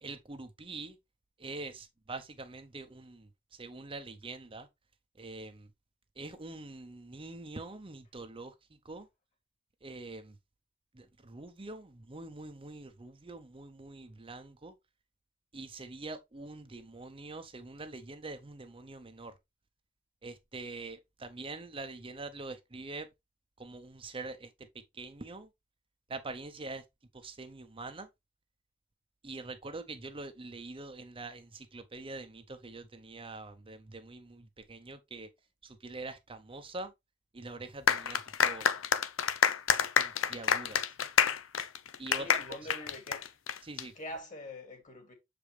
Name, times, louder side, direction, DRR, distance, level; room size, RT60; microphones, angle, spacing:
voice 1, 0.0-1.0 1.4-4.7 5.2-5.7 6.2-8.5 8.8-9.1 9.8-10.4 10.9-14.7 15.5-19.3 20.2-23.1 23.6-24.5 24.9-25.5 26.1-26.8 27.1-28.1 29.2-35.3 35.6-36.9 37.3-38.7 40.0-40.8 42.0-42.6 43.6-43.9, right 3 dB, 25° right, 0.7 m, -44 dB
sound 1, 37.9-43.8, left 8 dB, 80° left, 0.6 m, -28 dB
voice 2, 42.1-43.2 44.0-45.1, left 1 dB, 40° left, 2.6 m, -44 dB
6.8 x 5.1 x 3.3 m
head